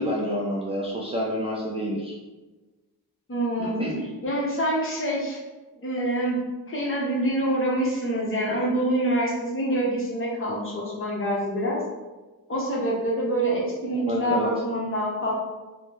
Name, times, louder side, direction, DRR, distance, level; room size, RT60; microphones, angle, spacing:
voice 1, 0.0-2.1 3.6-4.1 14.1-14.5, equal, 15° right, -6 dB, 0.4 m, -28 dB
voice 2, 3.3-3.9 4.2-5.4 5.7-6.4 6.7-11.8 12.5-15.3, right 1 dB, 35° left, -4 dB, 0.8 m, -26 dB
3.3 x 2.1 x 2.9 m, 1.2 s
wide cardioid pair, 125°, 38 cm